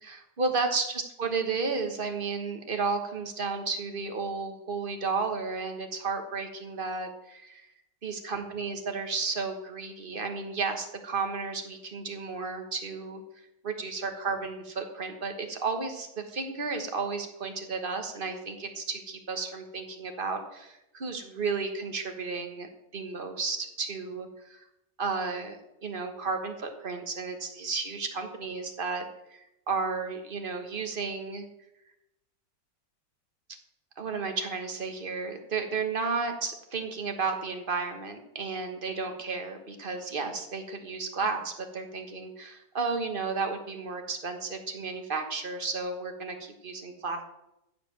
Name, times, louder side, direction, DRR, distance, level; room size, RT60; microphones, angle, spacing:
voice 1, 0.0-0.9 1.2-7.7 8.0-13.2 13.6-24.6 25.0-29.0 29.3-31.5 34.0-47.2, right 4 dB, 35° right, 5 dB, 1.4 m, -33 dB
14.5 x 5.1 x 7.6 m, 0.87 s
omnidirectional pair, 1.8 m